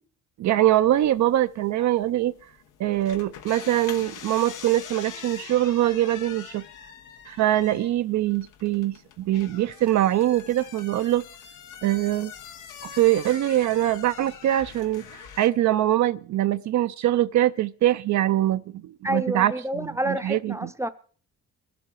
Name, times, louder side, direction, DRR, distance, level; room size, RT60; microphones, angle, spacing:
voice 1, 0.4-2.3 2.8-6.6 7.3-11.2 11.8-12.3 12.8-20.7, right 13 dB, 70° right, 0.6 m, -23 dB
sound 1, 0.9-15.5, left 8 dB, 85° left, 1.3 m, -44 dB
voice 2, 19.0-20.9, right 1 dB, 10° right, 0.7 m, -28 dB
21.0 x 7.7 x 4.6 m
cardioid pair, 90°, 30 cm